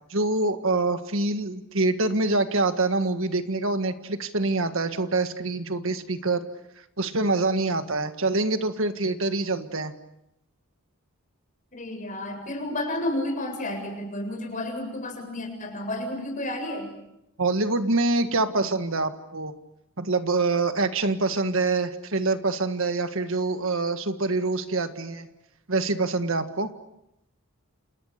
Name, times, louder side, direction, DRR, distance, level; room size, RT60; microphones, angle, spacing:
voice 1, 0.1-6.4 7.0-9.9 17.4-19.5 20.0-25.3 25.7-26.7, right 3 dB, 65° right, 9 dB, 1.7 m, -25 dB
voice 2, 11.7-16.9 20.5-20.6, left 1 dB, 35° left, 4 dB, 7.4 m, -31 dB
29.5 x 28.5 x 6.8 m, 0.82 s
head